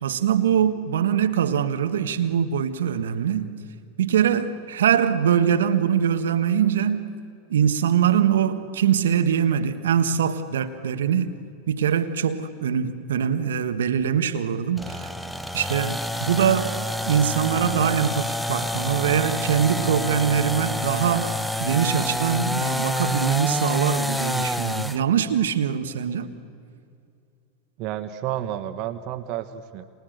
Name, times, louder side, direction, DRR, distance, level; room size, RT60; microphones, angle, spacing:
voice 1, 0.0-3.5 4.0-7.1 7.5-11.4 11.7-15.1 15.5-16.7 17.1-26.3, right 8 dB, 80° right, 1.5 m, -23 dB
sound 1, 14.8-25.0, left 1 dB, ahead, 0.9 m, -28 dB
voice 2, 27.8-29.8, right 11 dB, 50° right, 1.5 m, -31 dB
29.5 x 28.0 x 6.7 m
hypercardioid pair, 95°, 0 cm